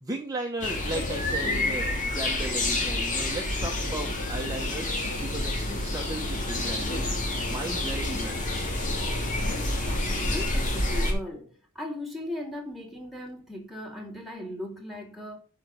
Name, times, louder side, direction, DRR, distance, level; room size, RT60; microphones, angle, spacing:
voice 1, 0.0-7.1 7.5-8.7, right 2 dB, 15° right, 1.4 m, -36 dB
sound 1, 0.6-11.1, left 2 dB, 35° left, 2.7 m, -28 dB
voice 2, 9.4-15.4, left 1 dB, ahead, 2.9 m, -38 dB
10.5 x 4.8 x 6.6 m
head